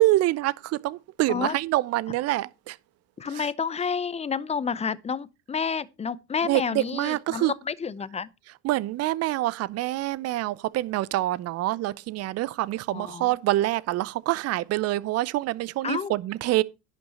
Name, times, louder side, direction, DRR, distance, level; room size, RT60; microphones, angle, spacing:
voice 1, 0.0-2.8 3.3-3.5 6.4-7.5 8.6-16.6, right 16 dB, 45° right, 0.7 m, -26 dB
voice 2, 3.2-8.3 12.9-13.3 15.8-16.1, left 6 dB, 15° left, 0.6 m, -30 dB
11.0 x 5.9 x 5.4 m
hypercardioid pair, 85°, 37 cm